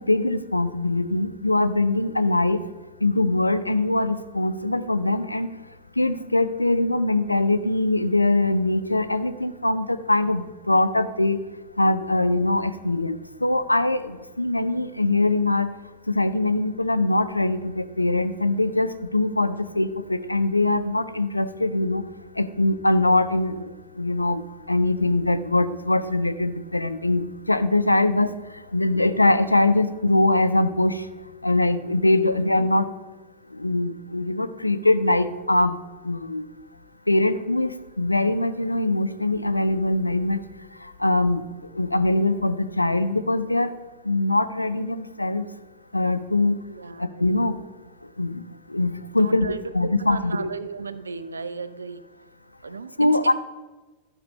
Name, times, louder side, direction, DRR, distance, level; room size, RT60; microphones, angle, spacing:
voice 1, 0.0-2.6 3.0-5.5 6.0-11.4 11.8-15.7 16.1-22.0 22.4-23.7 24.0-24.4 24.7-28.3 28.7-31.0 31.4-32.9 33.5-35.8 36.0-36.5 37.1-40.4 40.8-41.4 41.8-43.7 44.0-45.4 45.9-46.6 47.0-47.6 48.2-48.4 48.7-49.5 49.7-50.5 53.0-53.3, left 2 dB, 85° left, 12 dB, 0.4 m, -22 dB
voice 2, 46.7-47.0 49.1-52.0 52.6-52.9 53.2-53.3, right 4 dB, 75° right, 15 dB, 0.4 m, -35 dB
12.5 x 5.0 x 5.3 m, 1.2 s
figure-of-eight pair, 90°, 0 cm